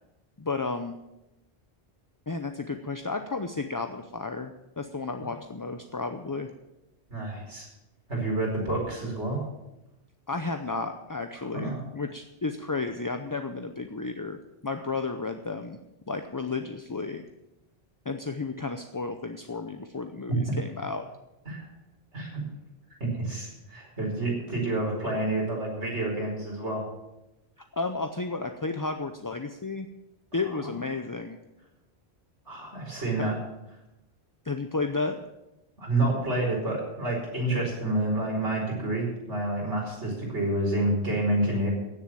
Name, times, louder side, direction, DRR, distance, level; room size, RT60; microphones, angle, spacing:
voice 1, 0.4-1.0 2.3-6.5 10.3-14.4 14.6-15.8 16.1-17.2 18.1-21.0 27.7-29.9 30.3-31.4 33.2-33.3 34.4-35.2, left 3 dB, 25° left, 6 dB, 0.5 m, -32 dB
voice 2, 7.1-7.7 8.1-9.4 11.5-11.8 20.5-20.6 21.4-21.7 22.1-22.4 23.0-26.8 30.6-30.7 32.5-33.3 35.8-41.7, right 2 dB, 85° right, -2 dB, 5.2 m, -28 dB
16.0 x 7.3 x 7.6 m, 0.97 s
omnidirectional pair, 1.1 m